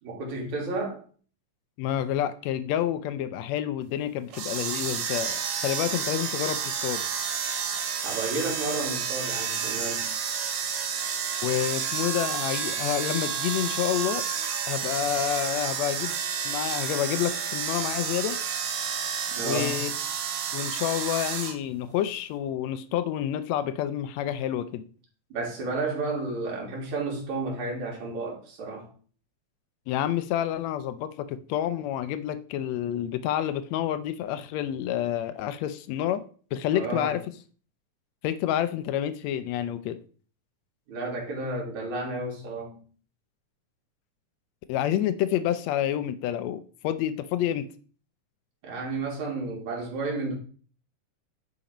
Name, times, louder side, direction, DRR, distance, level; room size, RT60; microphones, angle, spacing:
voice 1, 0.0-1.0 8.0-10.1 19.3-19.8 25.3-28.9 36.7-37.2 40.9-42.8 48.6-50.3, right 3 dB, 60° right, -1 dB, 3.9 m, -32 dB
voice 2, 1.8-7.0 11.4-14.2 14.7-16.1 16.4-18.4 19.4-19.9 20.5-24.8 29.9-36.2 36.5-37.2 38.2-40.0 44.7-47.7, left 11 dB, 85° left, 11 dB, 1.5 m, -28 dB
sound 1, 4.3-21.5, right 7 dB, 85° right, 3.0 m, -30 dB
10.0 x 4.1 x 5.1 m, 0.42 s
omnidirectional pair, 3.8 m